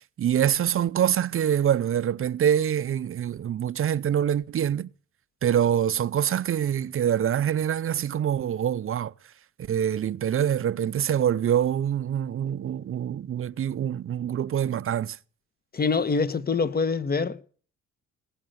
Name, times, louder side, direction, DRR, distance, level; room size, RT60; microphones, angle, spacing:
voice 1, 0.0-4.9 5.4-9.1 9.7-15.2, right 9 dB, 45° right, 0.6 m, -25 dB
voice 2, 15.7-17.4, left 4 dB, 30° left, 1.2 m, -25 dB
19.5 x 8.0 x 6.5 m
cardioid pair, 90°, 30 cm